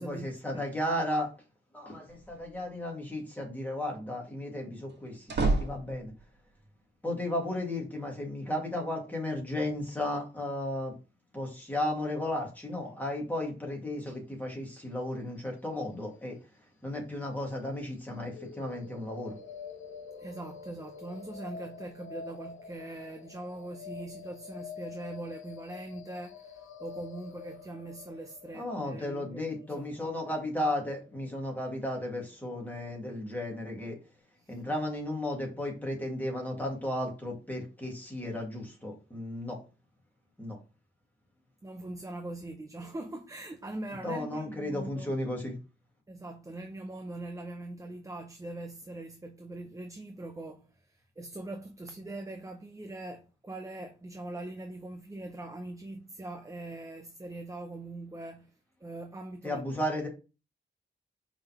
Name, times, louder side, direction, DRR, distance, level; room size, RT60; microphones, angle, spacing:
voice 1, 0.0-1.3 1.7-6.1 7.0-10.9 11.3-16.4 16.8-19.4 28.5-34.0 34.5-39.6 40.4-40.6 44.0-45.6 59.4-60.1, left 1 dB, 10° left, 2.0 m, -34 dB
sound 1, 2.1-2.6 4.9-6.4, right 2 dB, 60° right, 1.4 m, -31 dB
sound 2, 18.3-32.3, left 5 dB, 75° left, 1.1 m, -47 dB
voice 2, 20.2-29.9 34.4-34.6 41.6-45.1 46.1-58.5 58.8-59.7, right 2 dB, 15° right, 0.6 m, -42 dB
5.3 x 3.7 x 5.8 m
wide cardioid pair, 175°, 20 cm